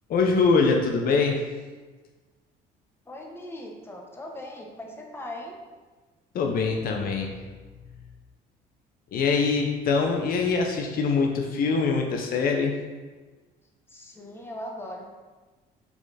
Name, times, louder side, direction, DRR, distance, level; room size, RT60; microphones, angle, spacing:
voice 1, 0.1-1.4 6.3-7.3 9.1-12.8, left 4 dB, 60° left, 2 dB, 0.7 m, -23 dB
voice 2, 3.1-5.6 13.9-15.1, left 1 dB, 15° left, 0 dB, 1.0 m, -39 dB
5.7 x 4.1 x 4.1 m, 1.3 s
cardioid pair, 110°, 17 cm